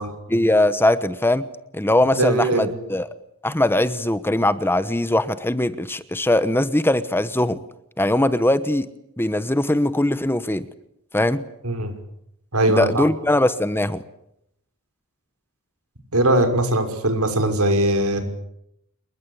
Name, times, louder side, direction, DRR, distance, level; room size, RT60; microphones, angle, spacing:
voice 1, 0.3-1.5 1.7-3.1 3.4-7.6 8.0-8.9 9.2-10.7 11.1-11.4 12.7-14.0, left 1 dB, 10° left, 13 dB, 1.1 m, -20 dB
voice 2, 2.2-2.8 11.6-11.9 12.5-13.0 16.1-18.2, right 1 dB, 75° right, 7 dB, 6.1 m, -20 dB
28.0 x 23.0 x 8.4 m, 0.78 s
head